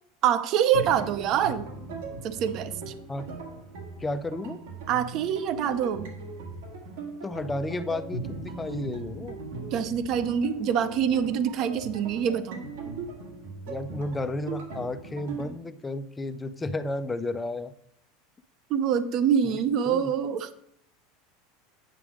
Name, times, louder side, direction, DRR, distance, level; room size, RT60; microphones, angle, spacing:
voice 1, 0.2-1.7 2.2-2.9 4.9-6.1 9.7-12.6 18.7-20.5, right 8 dB, 40° right, 13 dB, 0.6 m, -25 dB
sound 1, 0.7-15.5, right 3 dB, 80° right, 1.7 m, -39 dB
voice 2, 4.0-4.6 7.2-9.4 13.7-17.7 19.4-19.6 19.9-20.1, left 2 dB, 10° left, 11 dB, 0.5 m, -32 dB
9.0 x 5.9 x 4.9 m, 0.71 s
supercardioid pair, 160°, 0 cm